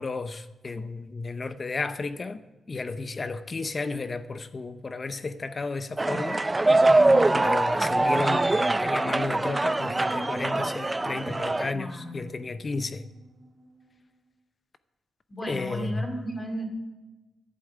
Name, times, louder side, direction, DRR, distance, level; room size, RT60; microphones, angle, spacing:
voice 1, 0.0-2.4 2.7-6.9 7.3-13.0 15.5-16.1, left 3 dB, 40° left, 0.7 m, -33 dB
sound 1, 6.0-11.7, right 2 dB, 20° right, 0.4 m, -23 dB
sound 2, 6.6-14.2, right 3 dB, 50° right, 2.1 m, -50 dB
voice 2, 7.0-7.5 11.7-12.3 15.3-16.6, right 1 dB, 25° left, 2.5 m, -35 dB
11.0 x 8.4 x 8.6 m
cardioid pair, 90°, 0 cm